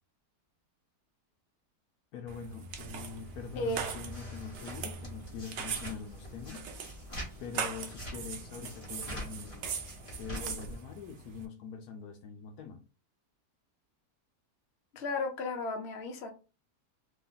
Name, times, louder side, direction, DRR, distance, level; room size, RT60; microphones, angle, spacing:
voice 1, 2.1-6.7 7.4-9.6 10.2-12.8, left 6 dB, 75° left, 1.1 m, -43 dB
sound 1, 2.3-11.5, right 6 dB, 65° right, 0.7 m, -41 dB
sound 2, 2.7-10.8, equal, 20° left, 1.2 m, -45 dB
voice 2, 3.6-3.9 14.9-16.3, left 2 dB, 50° left, 0.9 m, -34 dB
3.1 x 2.2 x 3.9 m
omnidirectional pair, 1.7 m